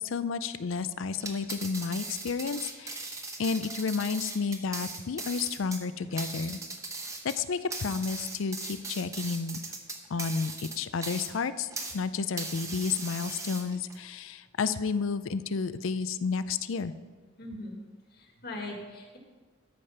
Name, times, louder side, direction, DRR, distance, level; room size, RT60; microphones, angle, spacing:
voice 1, 0.0-6.6 7.2-9.6 10.1-16.9, left 5 dB, 75° left, 13 dB, 0.5 m, -31 dB
sound 1, 1.1-12.0 12.4-14.0, right 3 dB, 15° right, 0.9 m, -39 dB
voice 2, 17.4-17.8 18.1-19.2, left 2 dB, 50° left, 1 dB, 1.8 m, -40 dB
13.0 x 5.0 x 5.6 m, 1.4 s
head